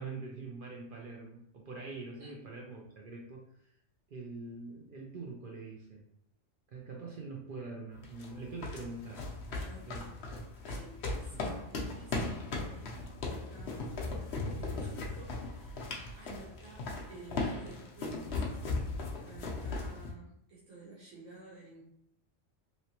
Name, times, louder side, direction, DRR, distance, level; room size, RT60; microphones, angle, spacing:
voice 1, 0.0-3.5 4.1-6.1 6.7-9.2 9.9-10.1, right 3 dB, 60° right, -1 dB, 0.6 m, -44 dB
sound 1, 7.9-20.1, left 3 dB, 60° left, 0.9 m, -38 dB
voice 2, 9.5-10.1 10.6-14.0 14.6-18.4 19.3-21.8, right 3 dB, 85° right, -7 dB, 1.3 m, -52 dB
3.1 x 2.7 x 2.8 m, 0.71 s
omnidirectional pair, 1.3 m